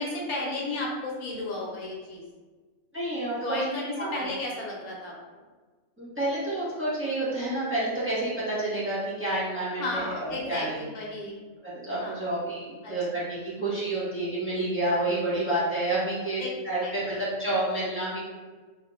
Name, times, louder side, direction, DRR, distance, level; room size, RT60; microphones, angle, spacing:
voice 1, 0.0-2.2 3.4-5.1 9.8-11.4 12.0-12.3 12.8-12.9 13.6-13.7 16.8-17.2, left 2 dB, 80° left, -3 dB, 1.4 m, -33 dB
voice 2, 2.9-3.6 4.0-4.3 6.0-10.9 11.6-18.2, right 1 dB, 10° right, -10 dB, 1.2 m, -29 dB
3.6 x 3.4 x 2.4 m, 1.4 s
omnidirectional pair, 1.5 m